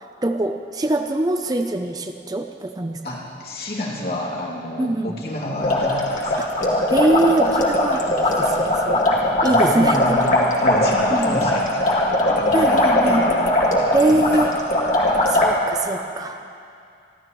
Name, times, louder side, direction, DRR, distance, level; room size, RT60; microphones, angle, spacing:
voice 1, 0.2-3.0 4.8-5.1 6.4-6.5 6.9-9.0 9.4-10.4 11.1-11.4 12.5-13.2 13.9-14.5 15.3-16.4, right 2 dB, 20° right, 6 dB, 0.5 m, -23 dB
voice 2, 3.0-6.5 8.4-13.4 13.8-14.5, left 1 dB, 60° left, -5 dB, 2.7 m, -29 dB
sound 1, 5.6-15.5, left 1 dB, 45° left, 2.0 m, -19 dB
28.0 x 12.5 x 3.1 m, 2.5 s
head